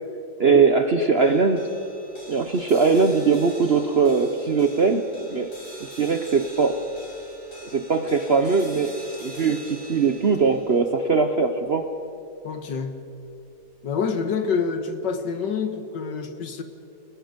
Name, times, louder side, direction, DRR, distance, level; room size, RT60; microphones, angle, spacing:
voice 1, 0.4-1.7 2.3-5.0 5.3-5.5 6.0-6.8 7.7-11.9, right 4 dB, 50° right, 6 dB, 0.8 m, -20 dB
sound 1, 1.2-13.7, right 1 dB, 85° left, 5.7 m, -44 dB
voice 2, 12.4-13.0 13.8-16.6, left 5 dB, 70° left, 8 dB, 2.0 m, -27 dB
29.5 x 20.0 x 5.2 m, 2.7 s
omnidirectional pair, 2.0 m